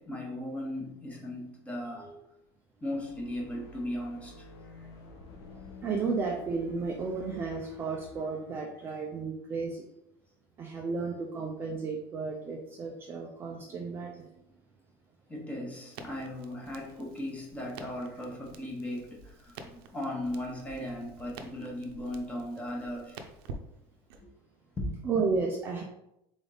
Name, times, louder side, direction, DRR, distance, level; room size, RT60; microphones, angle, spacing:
voice 1, 0.0-2.2 2.8-4.9 15.3-23.2 24.8-25.0, left 1 dB, 10° left, -1 dB, 0.8 m, -37 dB
sound 1, 2.9-8.1, left 3 dB, 85° left, 1.0 m, -49 dB
voice 2, 5.8-9.8 10.6-14.3 25.0-25.8, right 4 dB, 20° right, 0 dB, 0.4 m, -33 dB
Crackle, 15.9-24.2, right 3 dB, 70° right, 0.6 m, -49 dB
3.9 x 3.4 x 3.8 m, 0.82 s
cardioid pair, 175°, 13 cm